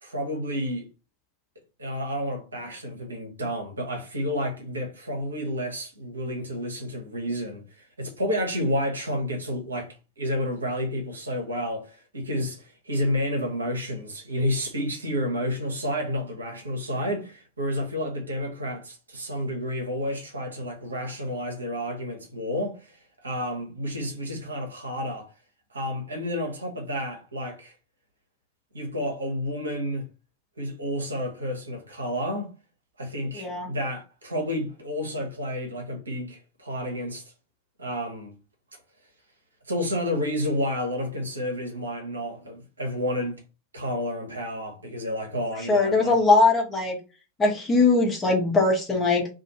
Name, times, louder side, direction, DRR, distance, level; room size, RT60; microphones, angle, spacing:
voice 1, 0.0-0.9 1.8-25.3 25.7-27.7 28.7-30.1 30.6-32.5 33.0-37.2 37.8-38.3 38.7-38.8 39.7-43.4 43.7-46.1, equal, 75° right, 0.9 m, -30 dB
voice 2, 33.3-33.7 45.7-47.0 47.4-49.3, left 3 dB, 15° left, 1.0 m, -21 dB
2.6 x 2.4 x 2.9 m
figure-of-eight pair, 90°, 0 cm